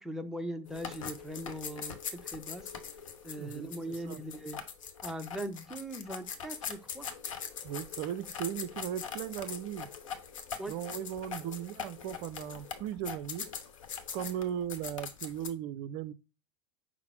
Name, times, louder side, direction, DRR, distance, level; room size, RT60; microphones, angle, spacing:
voice 1, 0.0-2.7 3.2-4.6 5.0-7.1 10.6-10.7, right 1 dB, ahead, 0.6 m, -40 dB
sound 1, 0.7-15.5, left 7 dB, 70° left, 0.9 m, -42 dB
voice 2, 3.4-4.2 7.6-9.9 10.7-13.5 14.1-16.1, right 10 dB, 50° right, 0.4 m, -37 dB
5.7 x 2.0 x 4.4 m
hypercardioid pair, 85°, 17 cm